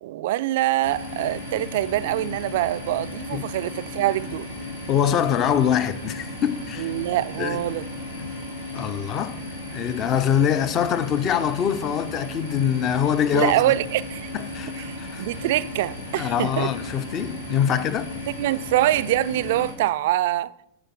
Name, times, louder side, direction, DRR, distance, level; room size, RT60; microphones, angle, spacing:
voice 1, 0.0-4.5 6.8-7.8 13.3-14.3 14.9-16.7 18.4-20.5, right 14 dB, 55° right, 0.3 m, -24 dB
sound 1, 0.8-19.7, left 2 dB, 85° left, 2.7 m, -35 dB
voice 2, 4.9-6.9 7.4-7.6 8.7-9.4 9.7-13.5 14.3-15.3 16.2-18.1, left 8 dB, 35° left, 0.6 m, -24 dB
9.9 x 5.2 x 5.9 m
figure-of-eight pair, 90°, 0 cm